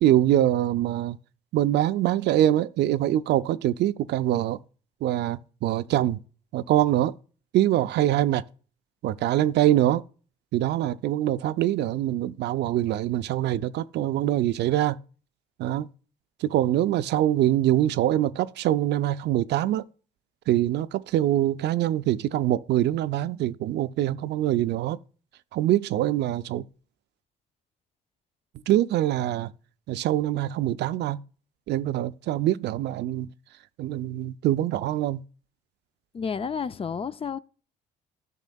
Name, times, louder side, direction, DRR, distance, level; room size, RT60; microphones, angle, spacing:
voice 1, 0.0-1.2 1.5-4.6 5.0-6.2 6.5-7.1 7.5-8.4 9.0-10.0 10.5-15.0 15.6-15.9 16.4-19.8 20.5-25.0 25.5-26.6 28.7-29.5 29.9-31.2 31.7-33.3 33.8-35.2, right 13 dB, 60° right, 0.4 m, -24 dB
voice 2, 36.1-37.4, left 6 dB, 30° left, 0.4 m, -30 dB
12.0 x 6.2 x 2.3 m
hypercardioid pair, 60°, 20 cm